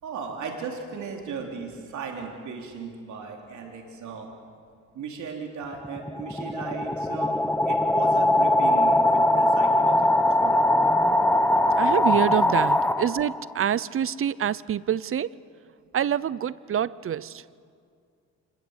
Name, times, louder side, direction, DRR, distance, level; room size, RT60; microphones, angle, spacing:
voice 1, 0.0-4.3 4.9-7.4 7.6-10.6, right 5 dB, 70° right, 2 dB, 3.5 m, -37 dB
sound 1, 5.7-13.5, left 1 dB, 5° left, 0.9 m, -21 dB
voice 2, 11.8-15.3 15.9-17.4, right 9 dB, 45° right, 20 dB, 0.7 m, -26 dB
26.0 x 21.5 x 8.1 m, 2.2 s
cardioid pair, 90°, 30 cm